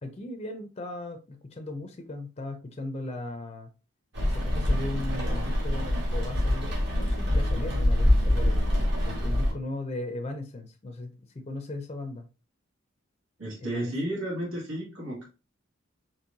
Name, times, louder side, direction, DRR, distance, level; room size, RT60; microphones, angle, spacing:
voice 1, 0.0-3.7 4.2-8.6 9.0-12.3 13.6-13.9, left 2 dB, 30° left, 5 dB, 0.5 m, -37 dB
Rain, 4.1-9.5, left 1 dB, 55° right, 1.6 m, -25 dB
voice 2, 13.4-15.3, right 1 dB, 85° right, -6 dB, 2.2 m, -32 dB
4.5 x 3.0 x 2.6 m, 0.31 s
head